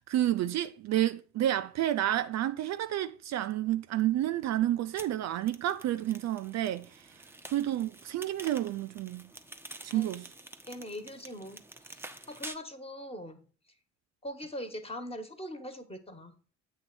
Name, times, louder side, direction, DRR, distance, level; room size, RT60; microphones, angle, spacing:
voice 1, 0.0-6.9 7.5-9.3 9.8-10.2, right 13 dB, 50° right, 0.5 m, -30 dB
sound 1, 5.0-12.6, right 2 dB, 5° right, 0.7 m, -48 dB
voice 2, 10.7-11.6 11.9-12.0 12.3-13.4 14.2-16.3, equal, 15° left, 1.4 m, -41 dB
8.1 x 3.2 x 6.1 m
hypercardioid pair, 55°, 36 cm